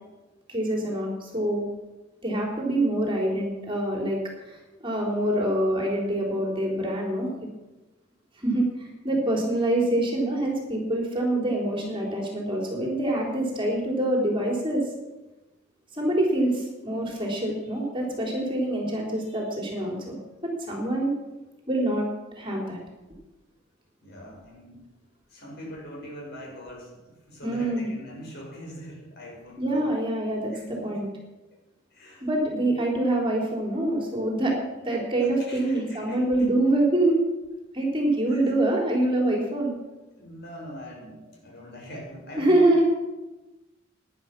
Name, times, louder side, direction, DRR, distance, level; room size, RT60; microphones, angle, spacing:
voice 1, 0.5-1.7 2.2-4.2 4.5-7.3 8.4-14.9 15.9-21.1 21.7-22.1 22.4-22.8 27.4-27.9 29.6-30.5 30.8-31.1 32.2-34.6 34.8-37.2 37.7-39.7 42.4-42.9, right 1 dB, 25° right, -1 dB, 3.8 m, -25 dB
voice 2, 24.0-24.9 25.3-29.9 30.5-31.1 31.9-32.2 32.6-32.8 35.4-36.2 38.3-38.5 40.1-42.6, equal, 55° left, -1 dB, 6.0 m, -42 dB
18.5 x 11.0 x 6.1 m, 1.1 s
head